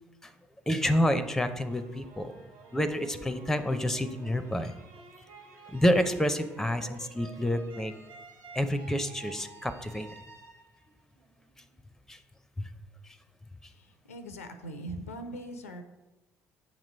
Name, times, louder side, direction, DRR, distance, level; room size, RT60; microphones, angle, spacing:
voice 1, 0.7-2.3 2.7-4.7 5.7-7.9 8.5-10.1 12.1-12.2 12.6-12.7, equal, 5° left, 11 dB, 0.5 m, -28 dB
sound 1, 0.8-11.8, right 4 dB, 65° right, 0.8 m, -51 dB
voice 2, 14.1-15.8, right 1 dB, 85° left, 9 dB, 0.4 m, -40 dB
7.3 x 3.0 x 5.2 m, 1.1 s
figure-of-eight pair, 50°, 7 cm